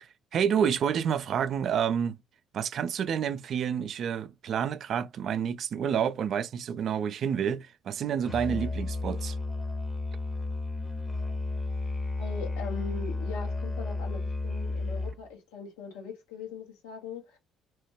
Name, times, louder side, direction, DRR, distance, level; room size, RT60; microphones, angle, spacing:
voice 1, 0.3-2.2 2.5-9.4, right 8 dB, 60° right, 0.3 m, -29 dB
Musical instrument, 8.2-15.3, left 3 dB, 20° left, 0.7 m, -32 dB
voice 2, 12.2-17.4, left 5 dB, 85° left, 0.9 m, -41 dB
2.9 x 2.1 x 3.1 m
hypercardioid pair, 65°, 0 cm